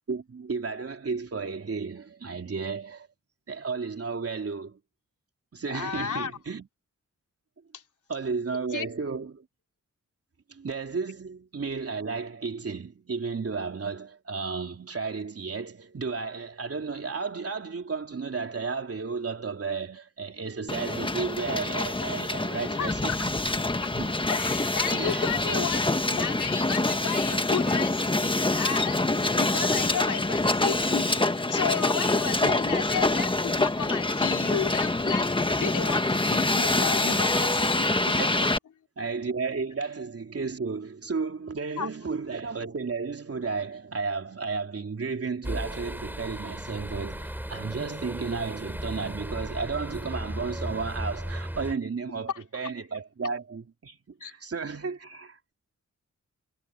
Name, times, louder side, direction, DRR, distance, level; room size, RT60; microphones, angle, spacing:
voice 1, 0.0-3.1 3.5-4.8 5.5-6.7 8.1-9.4 10.5-23.3 24.0-24.1 24.9-25.7 32.4-32.5 38.1-38.5 39.0-55.5, right 4 dB, 50° right, 3.4 m, -33 dB
voice 2, 5.7-6.3 7.7-7.8 8.7-8.9 22.7-23.2 23.5-23.6 23.8-23.9 24.3-25.8 26.1-37.9 41.8-41.9 54.2-54.3, left 7 dB, 85° left, 3.2 m, -33 dB
Hiss, 20.7-38.6, left 2 dB, 15° left, 1.4 m, -26 dB
sound 1, 45.4-51.7, right 1 dB, 5° right, 5.1 m, -36 dB
cardioid pair, 75°, 30 cm